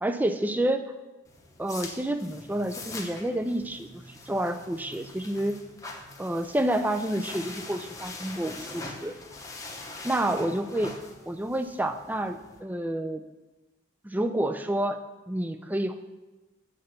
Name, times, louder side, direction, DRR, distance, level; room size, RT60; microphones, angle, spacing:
voice 1, 0.0-0.9 1.6-3.9 4.3-5.6 6.2-9.2 10.0-10.9 11.3-13.2 14.0-15.0 15.3-15.9, right 1 dB, 10° right, 8 dB, 0.3 m, -29 dB
sound 1, 1.2-12.6, left 3 dB, 15° left, 0.8 m, -43 dB
8.6 x 4.0 x 6.6 m, 1.2 s
head